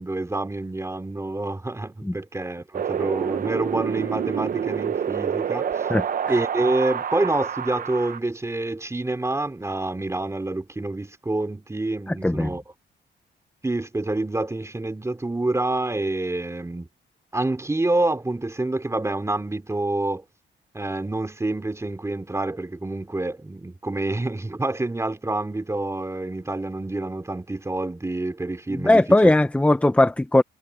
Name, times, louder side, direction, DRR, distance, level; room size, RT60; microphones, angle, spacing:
voice 1, 0.0-5.9 6.3-12.6 13.6-16.9 17.3-20.2 20.7-29.3, right 2 dB, 15° right, 3.3 m, -27 dB
Wind, 2.7-8.2, right 8 dB, 45° right, 0.8 m, -27 dB
voice 2, 28.7-30.4, left 1 dB, 5° left, 1.0 m, -18 dB
cardioid pair, 90°, 20 cm